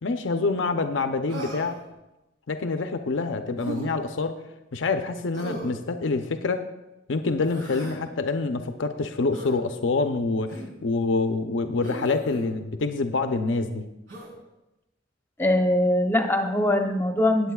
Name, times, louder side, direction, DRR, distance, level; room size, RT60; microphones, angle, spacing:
voice 1, 0.0-1.8 2.5-4.3 4.7-6.6 7.1-13.8, left 3 dB, 80° left, 7 dB, 0.6 m, -26 dB
Human voice, 1.3-1.8 3.6-3.9 5.3-5.8 7.4-8.0 9.3-9.5 10.5-10.8 11.8-12.4 14.1-14.3, right 1 dB, 90° right, 3.9 m, -37 dB
voice 2, 15.4-17.5, left 1 dB, 10° left, 4 dB, 0.8 m, -22 dB
19.5 x 8.4 x 2.3 m, 0.97 s
head